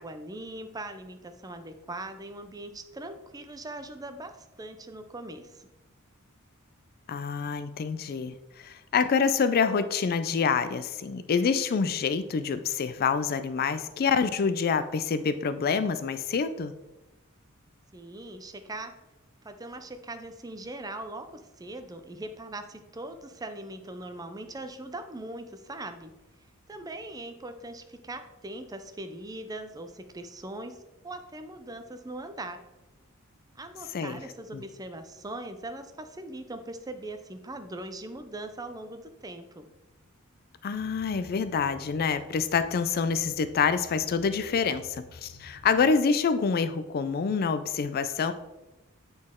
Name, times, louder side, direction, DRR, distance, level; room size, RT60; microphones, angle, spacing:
voice 1, 0.0-5.7 17.9-18.9 19.4-26.1 26.7-30.8 31.0-32.6 33.6-39.7, right 2 dB, 15° right, 8 dB, 0.5 m, -40 dB
voice 2, 7.1-16.7 33.9-34.2 34.5-34.6 40.6-48.3, left 5 dB, 45° left, 12 dB, 0.4 m, -27 dB
sound 1, 40.7-45.9, left 2 dB, 85° left, 1.0 m, -52 dB
8.6 x 4.1 x 3.6 m, 1.0 s
head